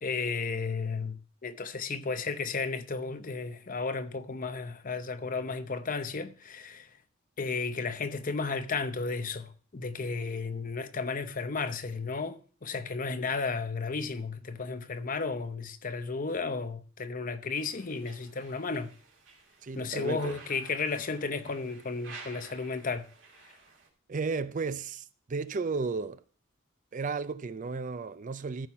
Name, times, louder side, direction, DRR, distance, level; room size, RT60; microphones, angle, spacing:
voice 1, 0.0-6.9 7.4-18.9 19.7-23.1, left 4 dB, 40° left, 0.7 m, -33 dB
sound 1, 17.5-23.9, right 4 dB, 65° right, 2.7 m, -52 dB
voice 2, 19.6-20.4 24.1-26.2 26.9-28.7, right 4 dB, 40° right, 0.4 m, -34 dB
14.0 x 5.8 x 4.6 m
head